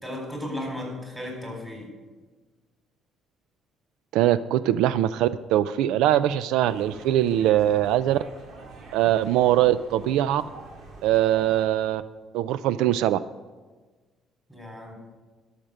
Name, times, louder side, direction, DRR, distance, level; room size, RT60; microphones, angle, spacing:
voice 1, 0.0-1.9 14.5-14.9, left 1 dB, 10° right, 0 dB, 4.0 m, -35 dB
voice 2, 4.1-8.2 8.9-10.4 11.0-12.0 12.3-13.2, right 12 dB, 85° right, 15 dB, 0.3 m, -22 dB
sound 1, 6.7-11.7, right 3 dB, 60° right, 1.9 m, -45 dB
12.5 x 6.6 x 6.6 m, 1.3 s
cardioid pair, 110°, 0 cm